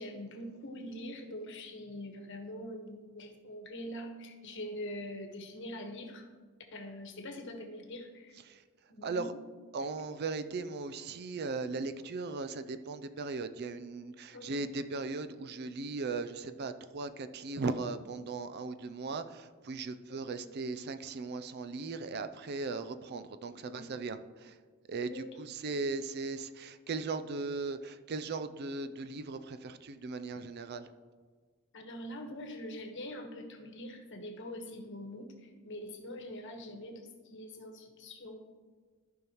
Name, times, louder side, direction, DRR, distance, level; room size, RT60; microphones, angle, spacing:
voice 1, 0.0-6.3 6.7-8.4 8.9-9.3 10.0-10.1 14.3-14.6 20.1-20.5 23.6-23.9 25.1-25.8 31.7-38.4, left 1 dB, 60° left, 4 dB, 1.2 m, -44 dB
voice 2, 9.0-9.3 9.7-24.6 24.9-30.9, right 3 dB, 50° right, 11 dB, 0.4 m, -38 dB
14.0 x 5.5 x 3.0 m, 1.5 s
head